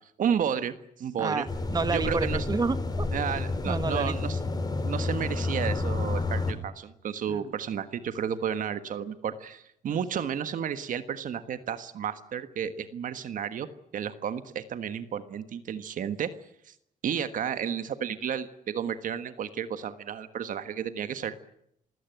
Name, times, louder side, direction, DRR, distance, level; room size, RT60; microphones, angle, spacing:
voice 1, 0.2-1.5 1.9-2.5 3.1-4.4 4.8-13.7 13.9-16.3 16.7-16.8 17.0-21.3, right 8 dB, 70° right, 11 dB, 1.5 m, -32 dB
voice 2, 1.2-3.1 3.6-4.1 7.3-7.5 9.9-10.0, right 4 dB, 30° right, 11 dB, 1.5 m, -30 dB
sound 1, 1.5-6.5, left 3 dB, 30° left, 3.3 m, -30 dB
28.5 x 16.5 x 9.3 m, 0.75 s
cardioid pair, 100°, 14 cm